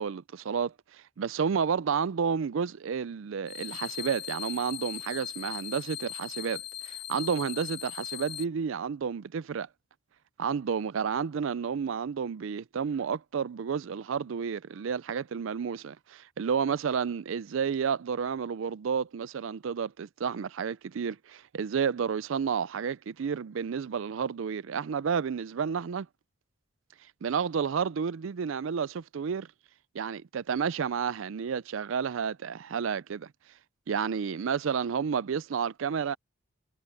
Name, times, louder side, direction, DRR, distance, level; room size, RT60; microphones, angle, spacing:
voice 1, 0.0-9.7 10.4-26.1 27.2-29.5 29.9-33.3 33.9-36.2, right 6 dB, 70° right, 0.4 m, -31 dB
sound 1, 3.5-8.4, left 11 dB, 50° left, 0.5 m, -39 dB
head